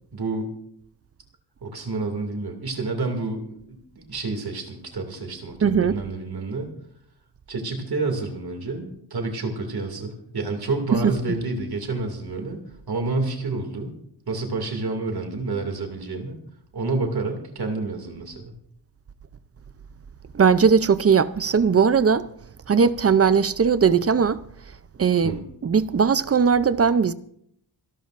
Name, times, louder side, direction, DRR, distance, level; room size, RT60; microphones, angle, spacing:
voice 1, 0.1-0.6 1.6-6.7 7.5-12.6 12.9-13.9 14.3-16.4 16.7-18.5 25.2-25.4, right 3 dB, 60° right, 2.4 m, -29 dB
voice 2, 5.6-6.0 10.9-11.0 20.3-22.2 22.7-24.4 25.0-25.4 25.6-27.1, right 6 dB, 35° right, 0.5 m, -19 dB
27.5 x 12.5 x 2.5 m
wide cardioid pair, 165°, 42 cm